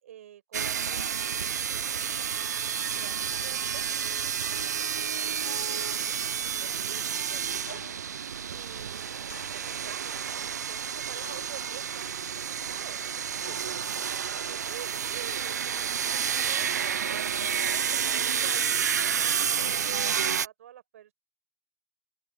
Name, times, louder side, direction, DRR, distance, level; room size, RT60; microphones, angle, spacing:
voice 1, 0.0-2.5 2.8-3.8 4.4-8.3 8.5-13.0 14.4-21.1, right 11 dB, 55° right, 5.8 m, -48 dB
sound 1, 0.5-20.5, right 8 dB, 80° right, 0.4 m, -30 dB
voice 2, 2.9-3.3 8.3-8.8 13.3-13.9, left 7 dB, 15° left, 4.9 m, -57 dB
sound 2, 7.7-8.1 9.3-10.0 11.2-11.6, left 8 dB, 70° left, 4.2 m, -48 dB
open air
hypercardioid pair, 140°, 9 cm